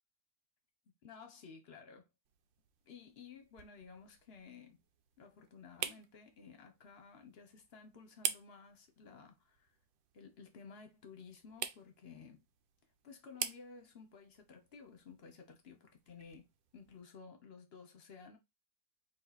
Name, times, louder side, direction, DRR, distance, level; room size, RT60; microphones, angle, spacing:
voice 1, 1.0-2.1 2.8-4.8 5.2-9.7 10.1-12.5 13.0-16.5 16.7-18.4, left 5 dB, 45° left, 0.9 m, -55 dB
sound 1, 2.2-17.0, right 9 dB, 90° right, 1.3 m, -48 dB
4.8 x 2.5 x 4.1 m
omnidirectional pair, 2.0 m